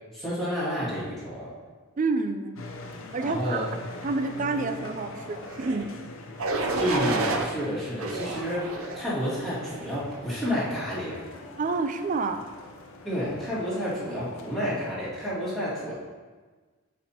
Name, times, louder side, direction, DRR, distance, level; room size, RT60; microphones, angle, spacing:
voice 1, 0.1-1.5 3.2-3.7 6.7-11.2 13.0-15.9, equal, ahead, -12 dB, 2.2 m, -30 dB
voice 2, 2.0-2.6 3.1-3.7 4.0-5.9 11.6-12.4, right 3 dB, 35° right, 9 dB, 0.4 m, -28 dB
sound 1, 2.6-14.9, left 2 dB, 65° left, 0.6 m, -43 dB
sound 2, 5.5-5.8 6.4-7.5 8.0-9.0 9.6-10.0, right 2 dB, 75° right, 0.7 m, -30 dB
8.8 x 5.2 x 2.9 m, 1.4 s
head